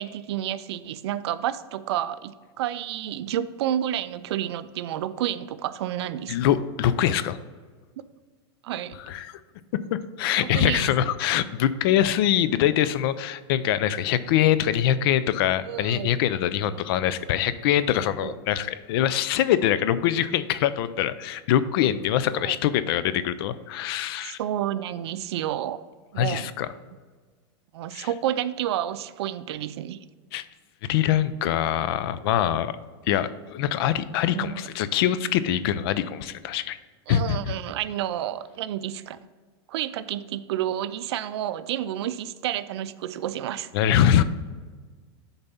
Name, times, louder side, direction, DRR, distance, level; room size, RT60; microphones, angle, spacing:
voice 1, 0.0-6.4 8.6-9.0 10.3-10.9 15.7-16.1 18.2-18.3 22.3-22.6 24.2-25.8 26.1-26.5 27.7-30.1 34.3-34.6 37.1-39.2 39.7-43.7, right 11 dB, 75° right, 14 dB, 0.4 m, -30 dB
voice 2, 6.3-7.4 9.1-9.3 9.9-24.4 26.2-26.7 27.9-28.1 30.3-30.4 30.8-32.8 33.1-36.8 37.1-37.5 43.7-44.2, left 11 dB, 60° left, 14 dB, 0.5 m, -24 dB
6.9 x 4.0 x 5.6 m, 1.4 s
supercardioid pair, 135°, 14 cm